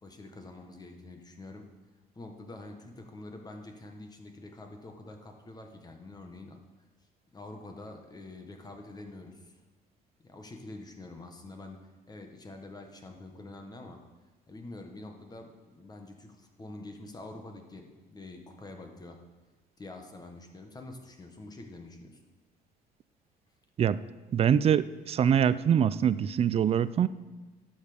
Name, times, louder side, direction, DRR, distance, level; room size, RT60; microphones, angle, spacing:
voice 1, 0.0-1.7 2.1-6.6 7.3-9.6 10.2-11.8 12.1-14.0 14.5-19.2 19.8-22.2, left 2 dB, 25° left, 4 dB, 1.4 m, -46 dB
voice 2, 24.3-27.1, right 8 dB, 35° right, 17 dB, 0.4 m, -24 dB
12.0 x 7.2 x 5.1 m, 1.2 s
cardioid pair, 110°, 17 cm